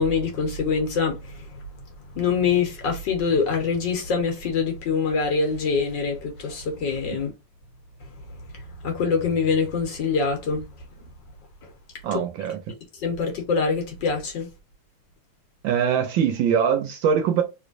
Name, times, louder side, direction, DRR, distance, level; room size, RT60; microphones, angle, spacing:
voice 1, 0.0-1.6 2.1-7.3 8.8-10.6 12.1-12.2 13.0-14.5, left 5 dB, 65° left, 1.4 m, -24 dB
voice 2, 12.0-12.6 15.6-17.4, right 7 dB, 70° right, 1.2 m, -22 dB
3.2 x 3.1 x 2.5 m
omnidirectional pair, 2.4 m